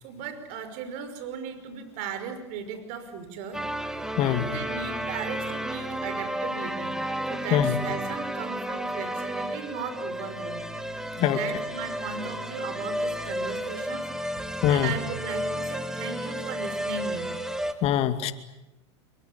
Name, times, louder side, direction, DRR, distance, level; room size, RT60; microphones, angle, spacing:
voice 1, 0.0-3.6 4.2-7.0 7.3-10.7 11.2-17.3, right 6 dB, 55° right, 9 dB, 5.3 m, -37 dB
sound 1, 3.5-17.7, equal, 5° right, 2.2 m, -32 dB
voice 2, 4.2-4.5 7.5-7.8 11.2-11.4 14.6-14.9 17.8-18.3, left 11 dB, 45° left, 10 dB, 2.4 m, -23 dB
27.0 x 24.0 x 8.6 m, 1.0 s
hypercardioid pair, 105°, 15 cm